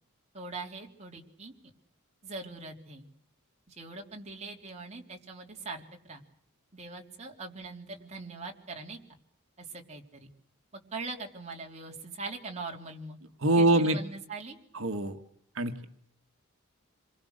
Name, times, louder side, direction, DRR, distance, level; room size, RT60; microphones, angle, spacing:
voice 1, 0.3-1.5 2.2-3.1 3.7-6.2 6.7-9.0 9.6-10.3 10.9-13.2 13.6-14.6, right 3 dB, 30° right, 0 dB, 3.3 m, -42 dB
voice 2, 13.4-14.0 14.7-15.2 15.6-15.8, right 2 dB, 65° right, 6 dB, 1.8 m, -24 dB
27.5 x 23.0 x 6.7 m, 0.68 s
head